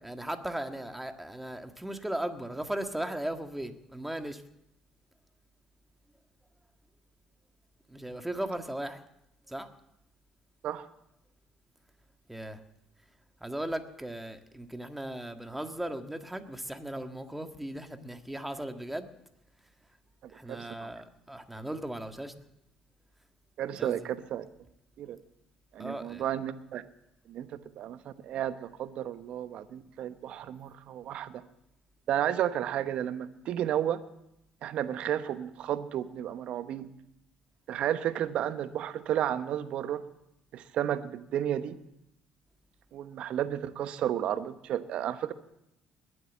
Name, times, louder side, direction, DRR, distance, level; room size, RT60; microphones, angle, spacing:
voice 1, 0.0-4.4 7.9-9.0 9.5-9.7 12.3-12.6 13.4-19.1 20.3-22.3 23.8-24.1 25.8-26.3, right 1 dB, 5° right, 7 dB, 1.7 m, -37 dB
voice 2, 20.5-20.9 23.6-24.5 25.0-25.2 25.7-26.8 27.3-27.5 27.8-31.4 32.1-34.0 34.6-36.9 37.7-40.0 40.5-41.8 42.9-45.3, right 10 dB, 60° right, 13 dB, 1.0 m, -32 dB
21.0 x 7.9 x 7.2 m, 0.83 s
hypercardioid pair, 55°, 2 cm